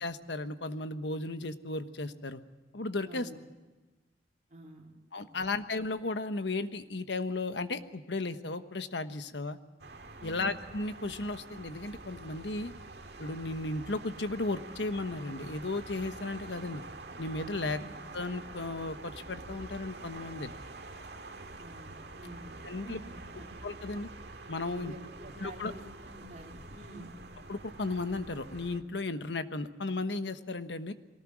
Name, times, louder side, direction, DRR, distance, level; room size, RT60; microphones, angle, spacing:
voice 1, 0.0-2.4 2.7-3.3 5.1-9.6 10.2-12.7 13.2-16.8 17.2-17.8 18.1-20.5 22.6-23.0 23.6-24.1 24.5-24.9 25.4-25.7 27.5-30.9, left 2 dB, 85° left, 10 dB, 1.2 m, -35 dB
voice 2, 3.1-3.4 4.5-5.3 10.2-10.5 17.6-17.9 21.6-23.5 24.7-27.2, right 1 dB, 45° right, -1 dB, 3.8 m, -49 dB
sound 1, 9.8-28.8, right 3 dB, 65° right, 1.9 m, -47 dB
23.0 x 18.5 x 7.4 m, 1.2 s
head